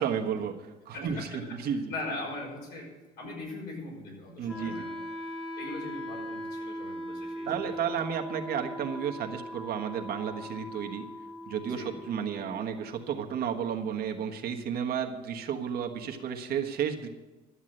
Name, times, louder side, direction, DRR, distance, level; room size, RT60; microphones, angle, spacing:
voice 1, 0.0-1.8 4.4-4.9 7.4-11.1 11.5-17.1, right 8 dB, 65° right, 3 dB, 1.4 m, -32 dB
voice 2, 0.9-1.6 1.9-2.9 3.2-5.0 5.5-7.9 11.6-12.0, left 2 dB, 70° left, -1 dB, 5.6 m, -40 dB
Wind instrument woodwind instrument, 4.5-14.5, equal, 5° left, 1.7 m, -40 dB
13.0 x 7.4 x 7.7 m, 1.2 s
cardioid pair, 110°, 17 cm